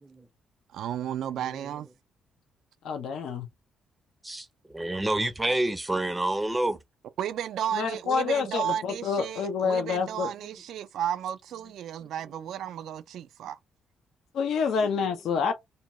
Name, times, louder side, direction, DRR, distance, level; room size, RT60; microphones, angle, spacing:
voice 1, 0.7-1.9 7.2-13.6, right 10 dB, 75° right, 0.3 m, -33 dB
voice 2, 2.8-3.4 7.7-10.3 14.3-15.5, left 6 dB, 75° left, 0.5 m, -27 dB
voice 3, 4.7-6.8, right 1 dB, 15° right, 0.5 m, -28 dB
2.7 x 2.2 x 2.9 m
cardioid pair, 90°, 0 cm